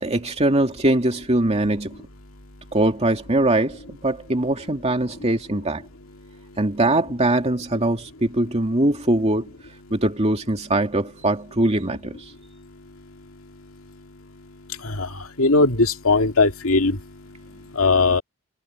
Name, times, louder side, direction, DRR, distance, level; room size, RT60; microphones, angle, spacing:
voice 1, 0.0-2.0 2.7-5.8 6.6-9.5 9.9-12.2, right 1 dB, 30° right, 2.4 m, -22 dB
voice 2, 15.4-17.0 17.8-18.2, left 3 dB, 70° left, 2.4 m, -18 dB
head